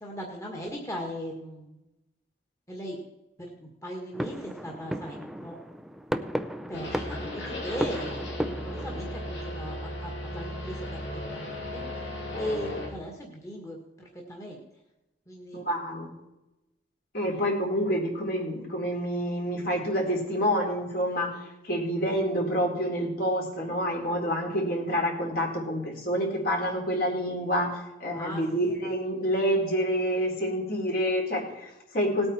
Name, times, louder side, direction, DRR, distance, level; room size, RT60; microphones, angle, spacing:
voice 1, 0.0-1.8 2.7-3.0 3.4-5.6 6.7-8.2 8.6-11.8 12.4-13.8 14.3-14.6 15.3-15.6 28.1-28.4, equal, 15° left, -1 dB, 1.8 m, -38 dB
sound 1, 4.1-9.1, equal, ahead, 0.5 m, -34 dB
sound 2, 6.7-12.9, left 1 dB, 80° left, 3.2 m, -36 dB
voice 2, 15.5-16.1 17.1-32.3, equal, 55° left, -1 dB, 3.9 m, -28 dB
18.5 x 8.7 x 4.4 m, 0.96 s
head